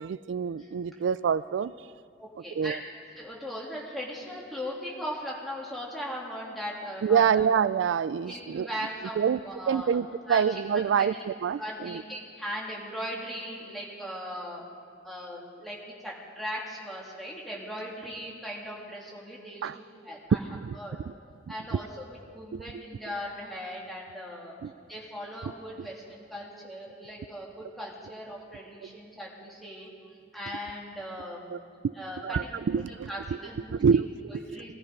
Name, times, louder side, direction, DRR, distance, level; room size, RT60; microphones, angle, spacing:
voice 1, 0.0-1.9 2.5-2.8 7.0-8.7 9.2-9.4 9.7-12.0 19.6-19.8 20.5-20.8 21.1-21.2 21.7-21.8 22.5-22.8 24.6-24.7 25.8-25.9 28.8-28.9 31.5-31.6 31.8-31.9 32.2-33.1 33.7-34.7, right 7 dB, 75° right, 17 dB, 0.3 m, -27 dB
voice 2, 2.2-2.8 3.1-7.4 8.3-10.0 10.3-10.4 10.7-14.6 15.0-19.7 20.0-20.4 20.8-21.0 21.5-24.5 24.9-29.9 30.3-31.6 32.0-32.8 33.1-33.8 34.3-34.7, equal, ahead, -4 dB, 2.6 m, -39 dB
19.5 x 14.0 x 5.2 m, 2.3 s
head